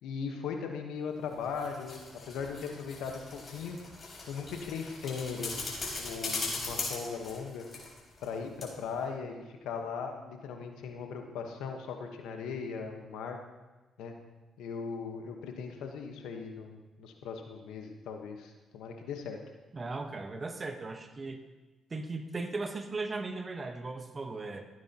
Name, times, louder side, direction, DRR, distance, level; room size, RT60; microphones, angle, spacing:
voice 1, 0.0-3.8 4.3-7.6 8.2-13.4 14.0-14.1 14.6-19.4, left 5 dB, 85° left, 4 dB, 1.2 m, -38 dB
sound 1, 1.3-8.3 8.6-8.7, left 3 dB, 45° left, 4.2 m, -40 dB
voice 2, 19.7-21.4 21.9-24.7, right 3 dB, 35° right, 7 dB, 1.2 m, -37 dB
15.5 x 9.4 x 3.0 m, 1.2 s
supercardioid pair, 60°, 0 cm